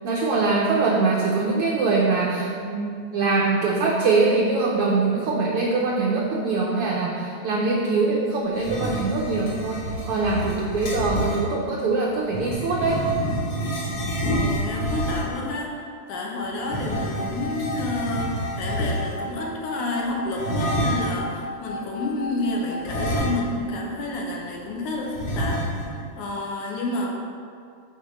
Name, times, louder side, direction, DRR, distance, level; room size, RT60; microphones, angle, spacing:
voice 1, 0.0-13.0, right 3 dB, 85° right, -2 dB, 1.2 m, -23 dB
sound 1, 8.5-11.5 12.3-15.5 16.6-19.3 20.4-21.2 22.8-23.8 24.1-24.2 25.1-26.0, equal, 50° left, 1.5 m, -28 dB
voice 2, 14.2-27.1, left 2 dB, 85° left, -1 dB, 2.4 m, -30 dB
sound 2, 16.1-23.1, left 1 dB, 70° left, 1.6 m, -36 dB
7.7 x 3.7 x 6.0 m, 2.3 s
omnidirectional pair, 3.4 m